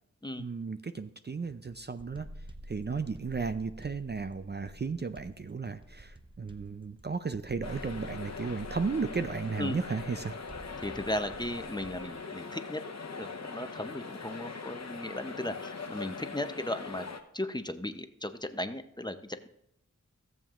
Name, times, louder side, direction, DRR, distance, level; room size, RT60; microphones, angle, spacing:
voice 1, 0.4-2.3 2.7-10.4, right 5 dB, 35° right, 10 dB, 0.5 m, -34 dB
sound 1, 1.5-12.2, right 1 dB, 15° right, 0.8 m, -49 dB
sound 2, 7.6-17.2, left 4 dB, 60° left, 1.0 m, -42 dB
voice 2, 10.8-12.8 13.2-17.1 17.3-19.5, left 1 dB, 15° left, 9 dB, 0.7 m, -36 dB
17.0 x 7.2 x 2.5 m, 0.74 s
wide cardioid pair, 50°, 31 cm